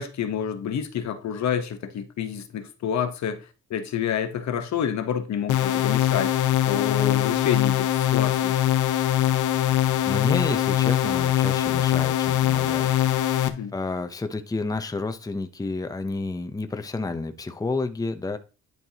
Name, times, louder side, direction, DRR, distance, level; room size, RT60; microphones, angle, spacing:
voice 1, 0.0-6.3 6.6-8.5 13.5-13.7, left 8 dB, 65° left, 1.1 m, -28 dB
sound 1, 5.5-13.5, left 12 dB, 85° left, 0.9 m, -22 dB
voice 2, 10.1-13.3 13.7-18.4, left 3 dB, 10° left, 0.7 m, -30 dB
11.0 x 4.6 x 2.9 m
cardioid pair, 90°, 30 cm